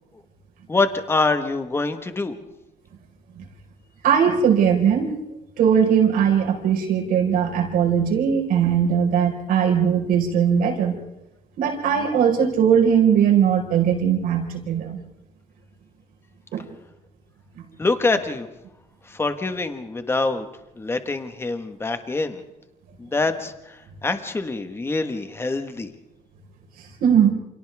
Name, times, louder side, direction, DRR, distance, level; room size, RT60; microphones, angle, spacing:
voice 1, 0.7-2.4 17.8-18.5 19.0-20.5 20.8-22.4 23.0-25.9, left 3 dB, 15° left, 8 dB, 1.5 m, -25 dB
voice 2, 4.0-5.1 5.6-11.0 11.6-15.0 16.5-16.6 17.5-17.6 27.0-27.3, right 8 dB, 75° right, 1 dB, 4.9 m, -19 dB
29.5 x 28.0 x 3.6 m, 0.91 s
cardioid pair, 135°, 15 cm